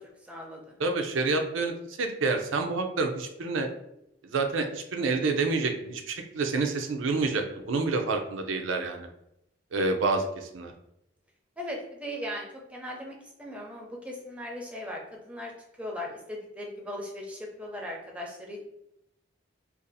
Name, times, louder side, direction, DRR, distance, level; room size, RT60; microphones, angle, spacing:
voice 1, 0.2-0.8 11.6-15.5 15.8-18.6, left 1 dB, 5° right, -1 dB, 0.6 m, -38 dB
voice 2, 0.8-1.7 2.0-3.7 4.2-9.1 9.7-10.7, right 3 dB, 85° right, 4 dB, 0.5 m, -28 dB
2.6 x 2.4 x 3.9 m, 0.80 s
head